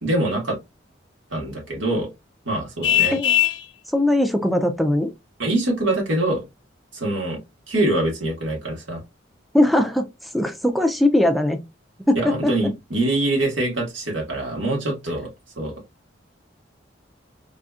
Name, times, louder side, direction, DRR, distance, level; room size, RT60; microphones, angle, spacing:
voice 1, 0.0-0.6 1.3-2.1 2.5-3.2 5.4-6.4 6.9-7.4 7.7-9.0 12.2-15.3 15.6-15.8, right 1 dB, 90° right, 1.6 m, -24 dB
Vehicle horn car horn honking, 2.8-3.7, left 11 dB, 70° left, 0.5 m, -19 dB
voice 2, 3.9-5.1 9.5-11.6 12.1-12.5, left 1 dB, ahead, 0.3 m, -20 dB
4.1 x 2.6 x 2.3 m
head